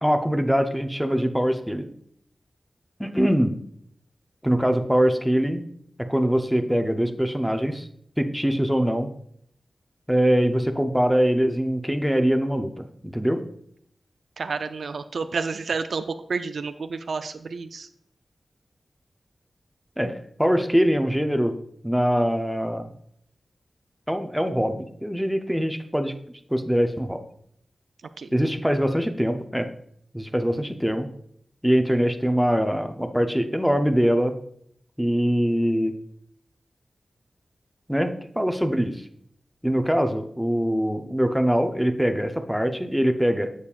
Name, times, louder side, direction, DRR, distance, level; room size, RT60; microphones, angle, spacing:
voice 1, 0.0-1.9 3.0-3.6 4.4-5.7 6.0-7.9 8.2-9.1 10.1-13.4 20.0-21.5 21.8-22.9 24.1-26.1 26.5-27.2 28.3-29.7 30.1-31.1 31.6-34.3 35.0-35.9 37.9-39.0 39.6-43.5, equal, ahead, 6 dB, 0.5 m, -23 dB
voice 2, 14.4-17.9 28.2-28.3, right 4 dB, 85° right, 9 dB, 0.3 m, -30 dB
7.1 x 6.7 x 2.4 m, 0.67 s
wide cardioid pair, 105°, 0 cm